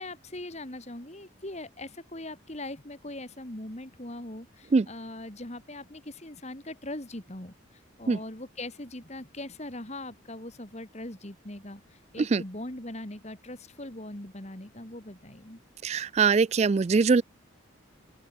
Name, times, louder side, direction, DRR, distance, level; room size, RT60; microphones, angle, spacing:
voice 1, 0.0-15.6, left 1 dB, 35° left, 2.5 m, -41 dB
voice 2, 15.8-17.2, right 4 dB, 30° right, 0.3 m, -22 dB
open air
head